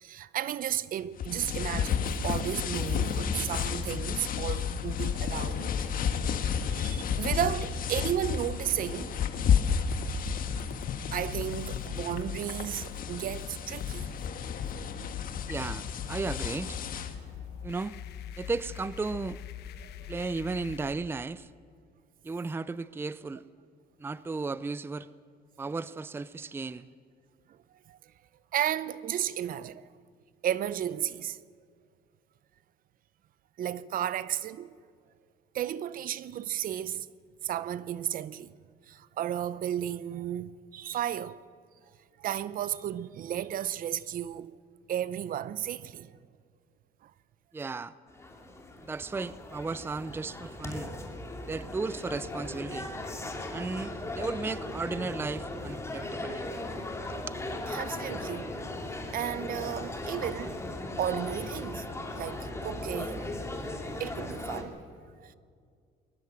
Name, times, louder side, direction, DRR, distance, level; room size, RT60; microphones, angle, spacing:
voice 1, 0.0-5.9 6.7-9.2 11.1-14.1 19.8-20.3 27.5-27.6 27.9-28.0 28.5-29.9 30.4-31.4 33.6-34.7 35.5-37.1 37.4-38.5 38.9-41.4 42.2-44.6 44.9-46.2 47.0-47.1 57.7-58.5 59.1-60.6 61.0-61.9 62.2-63.4 64.0-64.8 65.2-65.3, right 11 dB, 55° right, 0.7 m, -33 dB
sound 1, 1.2-17.2, left 7 dB, 55° left, 1.6 m, -32 dB
sound 2, 1.9-20.9, left 10 dB, 75° left, 1.1 m, -43 dB
voice 2, 15.5-16.8 17.6-18.0 18.4-19.4 20.1-21.5 22.2-23.4 24.0-25.1 25.6-26.9 47.5-47.9 48.8-50.9 51.5-52.9 53.5-56.4 57.1-57.4, right 3 dB, 15° right, 0.5 m, -35 dB
sound 3, 48.1-64.6, left 2 dB, 15° left, 2.9 m, -38 dB
21.5 x 19.0 x 7.5 m
cardioid pair, 110°, 17 cm